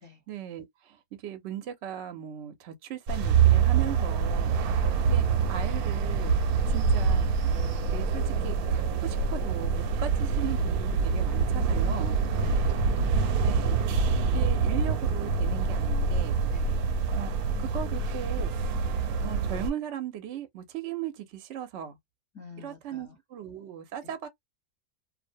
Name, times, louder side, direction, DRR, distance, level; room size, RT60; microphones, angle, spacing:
voice 1, 0.3-6.4 6.7-7.3 7.9-12.2 13.4-14.1 14.3-16.4 17.1-19.0 19.2-22.0 22.6-24.3, right 10 dB, 65° right, 0.8 m, -38 dB
sound 1, 3.1-19.7, right 5 dB, 90° right, 1.1 m, -25 dB
voice 2, 11.8-13.2 16.5-16.7 22.3-23.1 24.0-24.1, left 4 dB, 15° left, 0.6 m, -49 dB
2.4 x 2.1 x 2.5 m
omnidirectional pair, 1.5 m